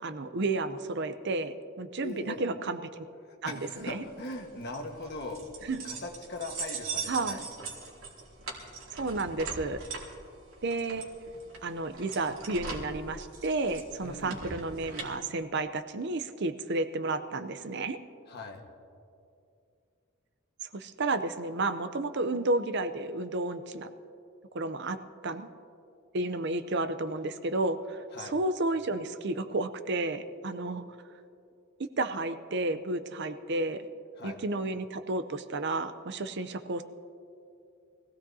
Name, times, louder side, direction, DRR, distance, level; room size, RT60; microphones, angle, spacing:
voice 1, 0.0-3.0 3.4-4.0 5.6-5.8 7.1-7.4 9.0-9.8 10.6-11.1 11.6-18.0 20.7-23.9 24.5-25.0 25.2-25.5 26.1-30.8 32.0-33.9 34.2-36.8, right 2 dB, 55° right, 10 dB, 0.6 m, -32 dB
voice 2, 2.0-2.4 3.2-5.4 5.8-7.4 14.0-14.4 18.3-18.6 28.1-28.4 34.2-34.4, left 2 dB, 50° left, 3 dB, 1.5 m, -40 dB
sound 1, 3.8-15.1, right 4 dB, 90° right, 2.3 m, -41 dB
24.0 x 16.0 x 2.8 m, 2.5 s
head